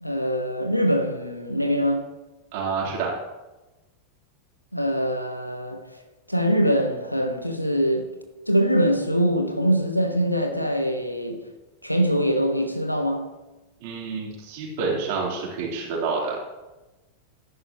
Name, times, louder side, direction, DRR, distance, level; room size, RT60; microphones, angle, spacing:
voice 1, 0.0-2.1 4.7-5.9 6.3-8.1 8.5-11.4 11.8-13.3, equal, 90° left, 1.2 m, -23 dB
voice 2, 2.5-3.1 13.8-16.4, right 4 dB, 50° right, 4.0 m, -28 dB
13.5 x 11.0 x 3.1 m
figure-of-eight pair, 90°, 0 cm